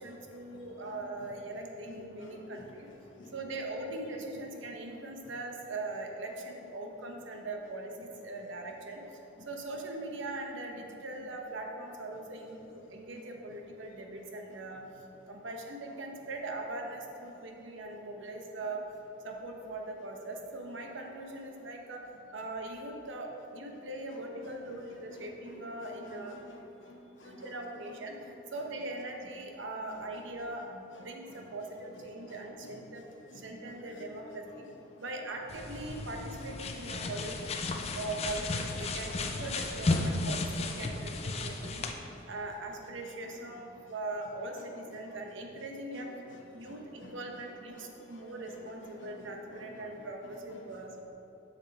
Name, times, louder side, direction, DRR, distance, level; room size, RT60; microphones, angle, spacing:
voice 1, 0.0-2.9 3.3-9.0 9.4-14.8 15.3-18.8 19.2-22.0 22.3-26.4 27.2-28.1 28.5-33.0 33.3-34.7 35.0-37.4 37.9-41.9 42.3-46.1 46.5-51.0, right 2 dB, 65° right, 2 dB, 0.9 m, -41 dB
voice 2, 0.8-1.3 1.8-2.6 3.2-3.3 24.4-24.5 25.1-27.5 27.9-28.3 29.9-30.0 30.9-31.1 32.6-32.8 33.3-33.4 34.0-34.1 37.7-37.8 41.8-41.9 43.2-43.3 44.6-44.7 45.9-46.8 47.0-47.1 47.7-48.2 48.5-48.6 48.8-49.7, left 1 dB, 65° left, 1 dB, 0.9 m, -52 dB
sound 1, 35.5-41.9, left 2 dB, 30° left, 0.4 m, -34 dB
6.7 x 6.7 x 4.3 m, 3.0 s
head